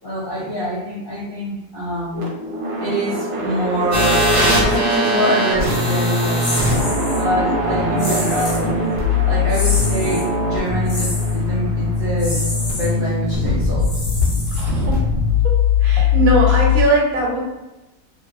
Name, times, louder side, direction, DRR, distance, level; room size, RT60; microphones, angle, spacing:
voice 1, 0.0-2.3 2.8-6.5 7.1-8.7 9.2-12.4 12.7-13.9, equal, 50° left, -8 dB, 0.7 m, -25 dB
sound 1, 2.1-14.2, right 1 dB, 85° right, 1.2 m, -28 dB
sound 2, 3.9-16.8, left 4 dB, 30° right, 1.0 m, -20 dB
sound 3, 6.4-7.2 8.0-8.7 9.5-10.3 10.9-11.4 12.2-12.9 13.8-15.0, left 1 dB, 70° left, 0.3 m, -28 dB
voice 2, 14.5-15.1 15.4-17.4, right 1 dB, 65° right, -2 dB, 1.2 m, -20 dB
3.0 x 2.3 x 2.4 m, 0.99 s
omnidirectional pair, 1.6 m